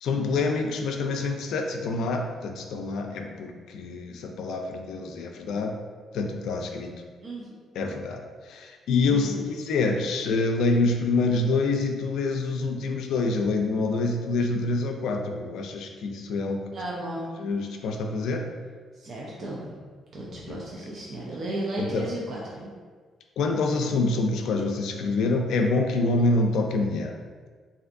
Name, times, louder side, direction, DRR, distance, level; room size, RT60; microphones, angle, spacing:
voice 1, 0.0-5.7 6.1-6.9 7.8-8.2 8.5-16.6 17.4-18.4 20.5-20.6 21.8-22.1 23.4-27.1, left 3 dB, 80° left, 3 dB, 0.3 m, -26 dB
voice 2, 7.2-7.5 9.0-9.4 16.7-17.3 18.9-19.8 20.1-22.7, right 1 dB, 50° right, -4 dB, 0.5 m, -34 dB
3.3 x 2.6 x 2.5 m, 1.6 s
cardioid pair, 90°, 0 cm